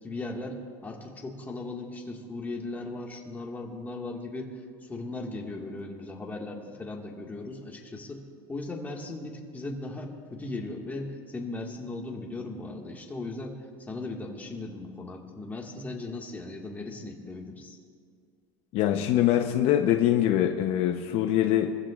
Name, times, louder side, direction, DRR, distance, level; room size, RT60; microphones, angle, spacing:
voice 1, 0.0-8.2 8.5-13.6 13.9-17.8, left 2 dB, 15° left, 0 dB, 1.8 m, -37 dB
voice 2, 18.7-21.8, left 11 dB, 55° left, 4 dB, 0.8 m, -23 dB
23.5 x 15.0 x 2.5 m, 2.1 s
cardioid pair, 140°, 12 cm